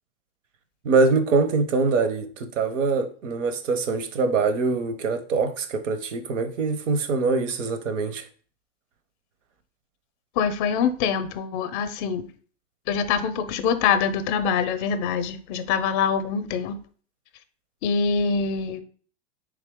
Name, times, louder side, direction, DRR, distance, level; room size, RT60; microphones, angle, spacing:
voice 1, 0.8-8.2, right 4 dB, 75° right, 9 dB, 0.8 m, -23 dB
voice 2, 10.4-12.3 12.9-16.8 17.8-18.8, left 6 dB, 45° left, 11 dB, 0.5 m, -24 dB
3.6 x 2.8 x 3.5 m, 0.43 s
hypercardioid pair, 115°, 37 cm